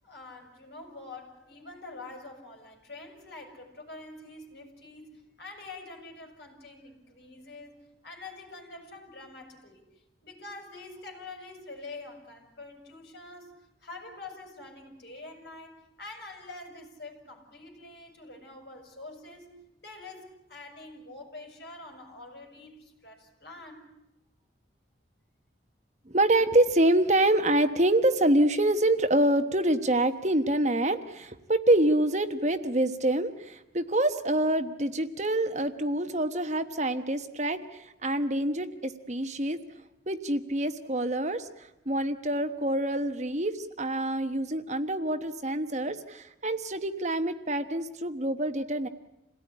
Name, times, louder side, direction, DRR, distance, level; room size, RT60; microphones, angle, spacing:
voice 1, 0.0-9.8 10.2-13.5 13.8-19.5 19.8-23.9, left 2 dB, 55° left, 3 dB, 5.9 m, -46 dB
voice 2, 26.1-39.6 40.1-48.9, right 1 dB, 40° right, 8 dB, 1.1 m, -26 dB
27.5 x 17.5 x 10.0 m, 0.91 s
head